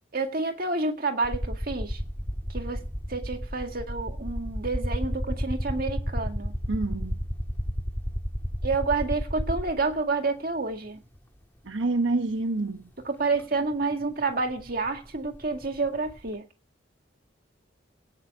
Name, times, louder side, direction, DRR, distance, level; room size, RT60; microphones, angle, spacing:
voice 1, 0.1-2.0 2.5-2.8 3.1-6.6 8.6-11.0 13.1-16.4, right 3 dB, 50° right, 1.9 m, -29 dB
sound 1, 1.2-10.0 11.2-11.3 13.4-13.5 13.7-16.3, equal, 10° left, 1.5 m, -32 dB
voice 2, 6.7-7.3 11.6-12.9, right 2 dB, 85° right, 1.1 m, -27 dB
17.5 x 6.2 x 7.3 m
head